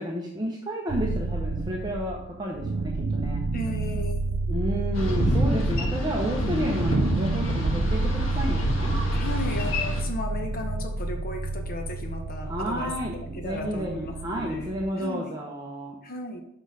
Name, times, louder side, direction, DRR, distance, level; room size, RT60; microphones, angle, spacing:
voice 1, 0.0-3.4 4.5-8.9 12.4-16.0, equal, 20° right, -2 dB, 0.8 m, -31 dB
sound 1, 0.9-14.9, right 3 dB, 70° right, 0.5 m, -30 dB
voice 2, 3.5-4.6 9.1-15.4 16.0-16.4, left 1 dB, 40° left, 4 dB, 0.9 m, -36 dB
Boat Water vehicle, 4.9-10.0, equal, 60° left, 1.5 m, -27 dB
6.1 x 5.6 x 4.8 m, 0.76 s
head